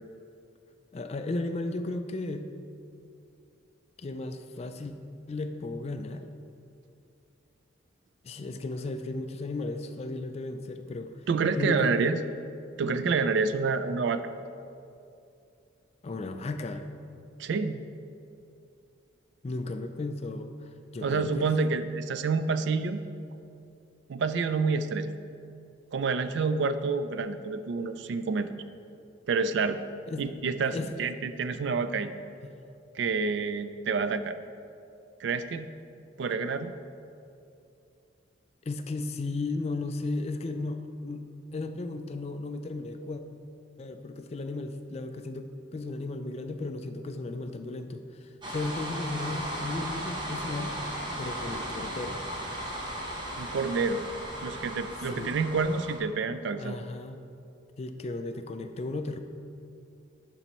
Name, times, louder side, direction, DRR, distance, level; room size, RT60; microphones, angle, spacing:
voice 1, 0.9-2.5 4.0-4.9 5.3-6.2 8.2-11.1 11.5-12.1 16.0-16.9 19.4-21.5 30.1-30.3 30.7-31.1 38.7-43.2 43.8-50.8 51.2-52.2 55.1-55.3 56.6-57.2 57.8-59.2, left 2 dB, 30° left, 8 dB, 0.3 m, -35 dB
voice 2, 11.3-12.2 12.8-14.2 17.4-17.8 21.0-23.0 24.1-25.1 25.9-28.5 29.3-29.8 30.2-32.1 32.9-34.4 35.2-35.7 36.2-36.7 53.4-54.0 54.4-56.8, right 4 dB, 60° right, 11 dB, 0.3 m, -28 dB
sound 1, 48.4-56.0, equal, 25° right, 0.9 m, -36 dB
11.0 x 5.3 x 3.0 m, 2.6 s
head